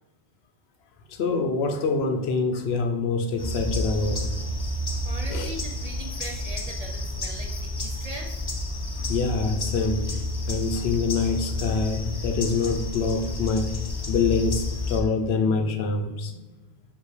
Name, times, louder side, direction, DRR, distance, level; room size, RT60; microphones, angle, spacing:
voice 1, 1.1-4.4 5.3-5.5 9.0-10.2 10.5-13.7 14.1-16.4, left 4 dB, 85° left, 5 dB, 0.9 m, -25 dB
sound 1, 3.4-15.0, left 2 dB, 30° left, 0.6 m, -30 dB
voice 2, 5.0-8.4, right 1 dB, 45° right, 2 dB, 0.6 m, -40 dB
5.2 x 2.7 x 3.2 m, 1.2 s
omnidirectional pair, 1.0 m